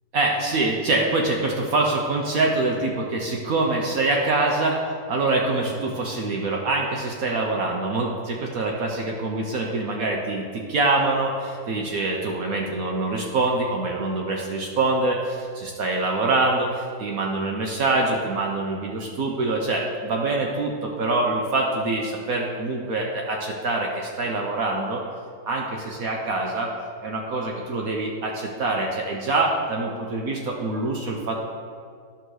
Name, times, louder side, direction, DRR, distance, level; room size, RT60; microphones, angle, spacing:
voice 1, 0.1-4.8 5.1-25.0 25.5-26.7 27.0-31.4, right 2 dB, 60° right, 0 dB, 1.1 m, -25 dB
10.5 x 3.8 x 6.3 m, 2.1 s
omnidirectional pair, 1.9 m